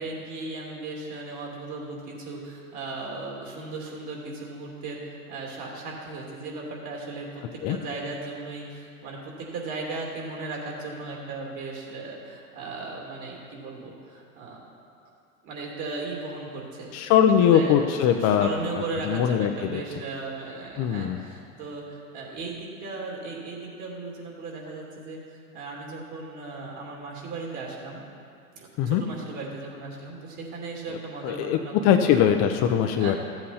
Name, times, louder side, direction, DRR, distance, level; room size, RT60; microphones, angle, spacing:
voice 1, 0.0-14.6 15.4-17.0 17.4-28.0 28.5-32.1 33.0-33.1, right 3 dB, 40° right, -2 dB, 2.8 m, -36 dB
voice 2, 16.9-18.5 19.0-19.8 20.8-21.2 28.8-29.0 31.2-33.2, left 9 dB, 40° left, 6 dB, 0.6 m, -21 dB
13.5 x 7.8 x 4.3 m, 2.5 s
hypercardioid pair, 110°, 43 cm